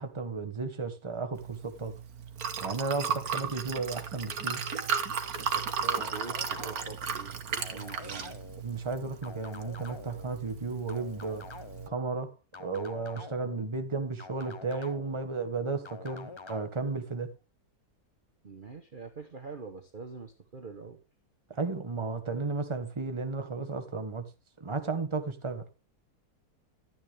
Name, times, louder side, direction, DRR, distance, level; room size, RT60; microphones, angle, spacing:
voice 1, 0.0-2.0 2.6-4.6 8.6-11.5 11.9-12.3 12.6-17.3 21.5-24.3 24.6-25.7, right 4 dB, 20° right, 1.3 m, -34 dB
Liquid, 1.3-11.9, right 6 dB, 70° right, 1.6 m, -35 dB
voice 2, 5.3-8.4 18.4-21.0, right 4 dB, 35° right, 1.2 m, -44 dB
sound 1, 5.9-7.0 7.6-8.6 9.2-10.3 10.9-11.9 12.5-13.6 14.2-15.2 15.8-16.7, left 4 dB, 40° left, 0.4 m, -46 dB
12.0 x 9.7 x 3.4 m
omnidirectional pair, 1.6 m